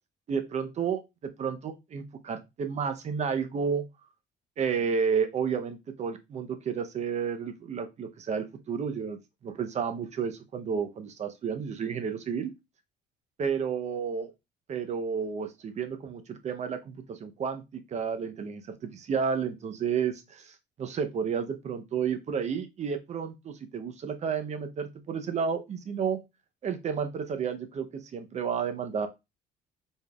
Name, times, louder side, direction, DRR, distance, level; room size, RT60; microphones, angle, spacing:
voice 1, 0.3-1.0 1.4-3.8 4.6-12.5 13.4-14.3 14.7-26.2 26.6-29.1, right 6 dB, 40° right, 8 dB, 0.7 m, -31 dB
4.2 x 3.5 x 2.3 m, 0.23 s
cardioid pair, 110°, 17 cm